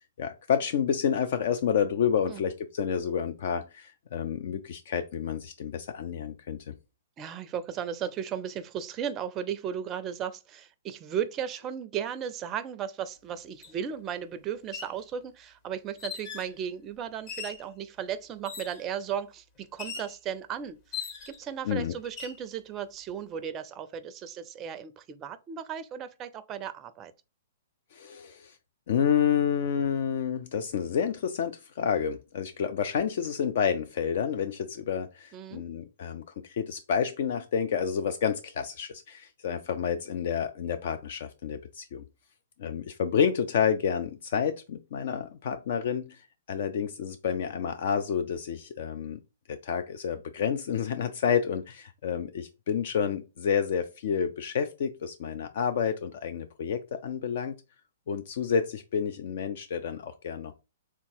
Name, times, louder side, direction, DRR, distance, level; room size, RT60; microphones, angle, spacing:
voice 1, 0.2-6.7 21.6-21.9 27.9-28.6 28.9-42.0 42.6-49.2 49.5-57.6 58.1-60.5, left 7 dB, 55° left, 0.4 m, -29 dB
voice 2, 7.2-27.1 35.3-35.6, right 8 dB, 25° right, 0.4 m, -35 dB
sound 1, 13.6-13.7 14.6-15.0 16.0-16.5 17.3-17.7 18.4-18.9 19.8-20.2 20.9-21.5 22.0-22.4, left 6 dB, 40° left, 1.3 m, -39 dB
3.4 x 2.8 x 4.4 m
figure-of-eight pair, 120°, 0 cm